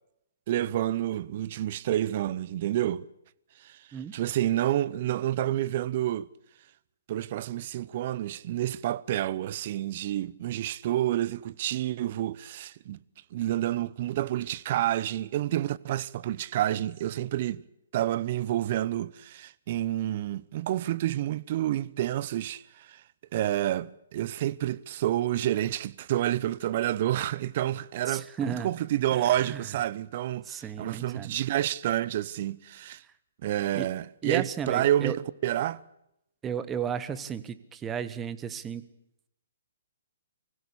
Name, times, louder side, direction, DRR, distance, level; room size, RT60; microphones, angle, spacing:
voice 1, 0.5-3.1 3.6-3.8 4.1-6.3 7.1-13.0 13.3-17.6 17.9-23.0 23.3-33.0 33.4-35.8, right 13 dB, 45° right, 0.8 m, -29 dB
voice 2, 28.1-28.7 29.5-29.6 30.5-31.3 33.7-33.9 34.2-35.1 36.4-38.8, right 8 dB, 15° right, 1.3 m, -33 dB
24.0 x 16.0 x 8.6 m
hypercardioid pair, 135°, 0 cm